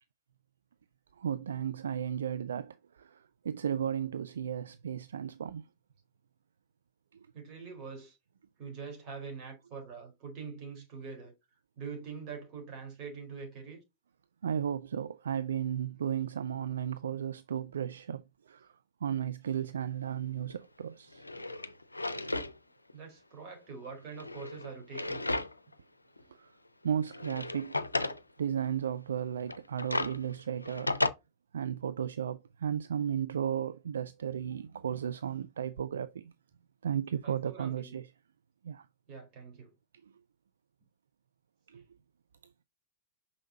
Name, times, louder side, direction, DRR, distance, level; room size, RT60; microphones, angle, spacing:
voice 1, 1.2-5.6 7.1-7.3 14.4-21.4 26.3-26.5 26.8-27.8 28.1-30.9 31.5-36.3 36.8-38.1 38.6-38.9 41.7-41.8, right 9 dB, 70° right, 0.4 m, -34 dB
voice 2, 7.3-8.2 8.6-11.3 11.8-13.8 22.9-25.2 37.2-38.0 39.1-39.7 41.7-41.8, right 5 dB, 40° right, 4.2 m, -44 dB
Drawer open or close, 20.5-20.6 21.1-22.5 22.9-23.0 24.0-25.7 26.2-26.3 27.0-28.2 29.4-31.1, left 2 dB, 90° left, 0.5 m, -34 dB
6.3 x 5.5 x 2.8 m
figure-of-eight pair, 95°, 0 cm